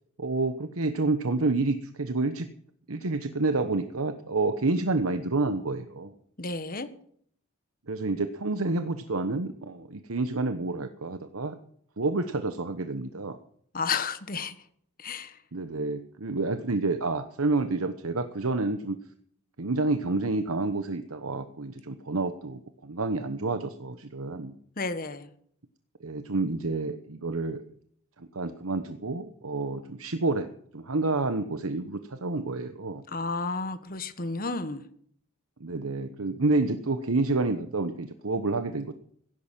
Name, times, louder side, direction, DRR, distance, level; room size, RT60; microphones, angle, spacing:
voice 1, 0.2-2.5 2.9-6.1 7.9-11.6 12.0-13.4 15.5-19.0 19.6-24.5 26.0-27.6 28.2-30.5 30.7-33.0 35.6-38.9, right 3 dB, 80° right, 1.1 m, -29 dB
voice 2, 6.4-6.9 13.7-14.5 15.0-15.4 24.8-25.3 33.1-34.8, left 4 dB, 40° left, 1.4 m, -32 dB
16.5 x 11.0 x 7.5 m
head